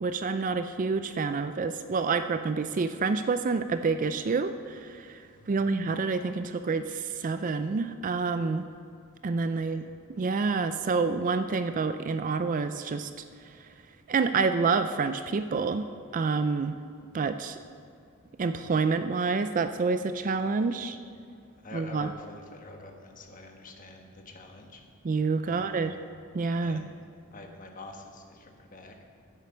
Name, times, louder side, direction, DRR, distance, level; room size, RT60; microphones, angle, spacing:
voice 1, 0.0-5.2 5.5-8.7 9.2-9.8 10.1-13.1 14.1-15.9 16.1-16.7 17.1-17.6 18.4-21.0 21.7-22.1 25.0-25.9 26.3-26.8, right 4 dB, 40° right, 10 dB, 0.4 m, -28 dB
voice 2, 5.3-5.7 9.5-9.8 20.6-20.8 21.6-24.8 25.4-26.1 26.6-27.0 27.3-29.0, left 2 dB, 40° left, 3 dB, 1.3 m, -47 dB
10.5 x 8.3 x 7.0 m, 2.3 s
head